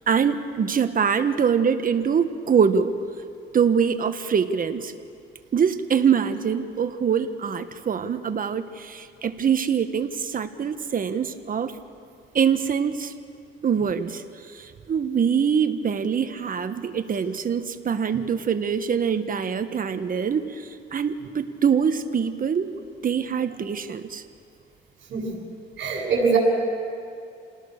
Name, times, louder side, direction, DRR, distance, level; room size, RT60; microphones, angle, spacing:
voice 1, 0.1-2.9 3.5-4.9 5.5-11.7 12.3-13.1 13.6-22.7 23.0-24.2, right 7 dB, 45° right, 9 dB, 1.3 m, -24 dB
voice 2, 25.8-26.4, right 5 dB, 70° right, 0 dB, 7.3 m, -22 dB
27.5 x 19.0 x 6.6 m, 2.4 s
cardioid pair, 90°, 20 cm